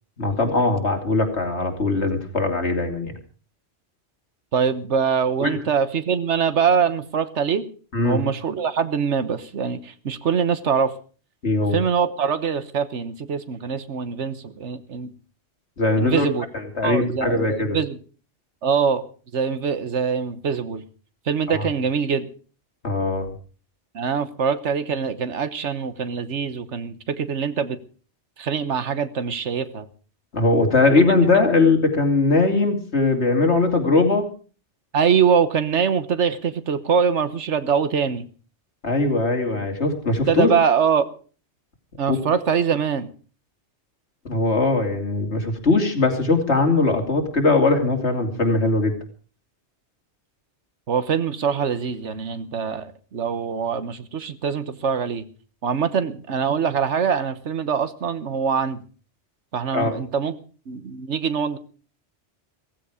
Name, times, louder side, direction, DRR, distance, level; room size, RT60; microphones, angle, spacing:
voice 1, 0.2-3.1 5.4-5.6 7.9-8.2 11.4-11.8 15.8-16.3 16.5-17.8 21.5-21.7 22.8-23.3 30.3-34.2 38.8-40.5 42.1-42.2 44.2-49.0 59.7-59.9, left 3 dB, 70° left, 3 dB, 3.2 m, -20 dB
voice 2, 4.5-7.7 8.0-10.9 11.7-15.1 16.0-16.4 16.8-18.0 18.6-19.0 19.3-20.8 21.3-22.3 23.9-27.8 28.4-29.9 34.9-38.3 40.3-41.1 42.0-43.1 50.9-55.3 55.6-58.8 59.5-60.3 60.7-61.6, right 6 dB, 85° right, 13 dB, 1.4 m, -23 dB
16.0 x 15.5 x 5.0 m, 0.39 s
omnidirectional pair, 1.2 m